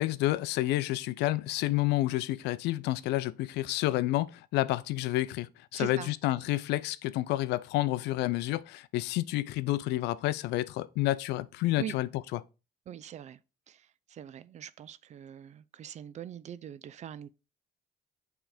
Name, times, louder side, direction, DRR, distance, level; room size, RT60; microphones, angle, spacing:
voice 1, 0.0-12.4, left 16 dB, 85° left, 0.4 m, -29 dB
voice 2, 5.7-6.1 11.8-12.0 12.9-13.4 13.7-17.3, right 10 dB, 45° right, 0.4 m, -42 dB
6.2 x 3.4 x 4.9 m
cardioid pair, 110°, 17 cm